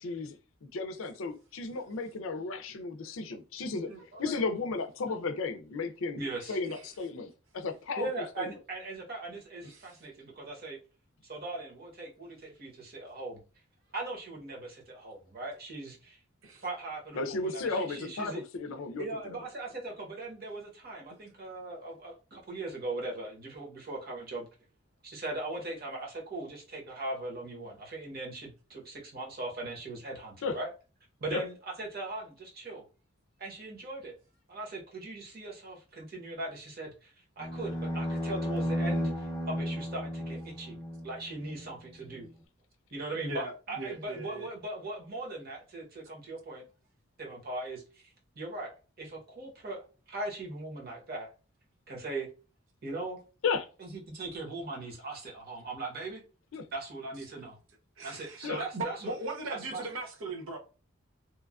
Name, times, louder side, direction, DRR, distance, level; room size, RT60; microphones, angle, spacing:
voice 1, 0.0-0.4 0.6-3.9 4.2-6.2 6.5-8.1 8.4-8.5 17.1-19.4 30.4-30.6 31.3-31.4 53.4-53.7 56.5-56.6 58.4-58.6, left 4 dB, 75° left, 0.4 m, -34 dB
voice 2, 6.2-6.6 8.0-10.8 11.3-13.4 13.9-16.2 16.6-18.4 19.0-24.5 25.0-30.7 31.2-32.8 33.4-34.1 34.5-40.8 41.0-42.3 42.9-46.6 47.2-47.8 48.3-51.3 51.9-52.3 52.8-53.2 53.8-56.2 56.7-57.6 58.0-59.1 59.5-59.9, right 2 dB, 45° right, 1.0 m, -39 dB
voice 3, 9.6-9.9 16.4-16.6 43.1-44.5 58.0-60.6, right 2 dB, 75° right, 0.6 m, -39 dB
sound 1, 37.4-41.7, equal, 20° left, 0.4 m, -34 dB
3.0 x 2.2 x 2.3 m
head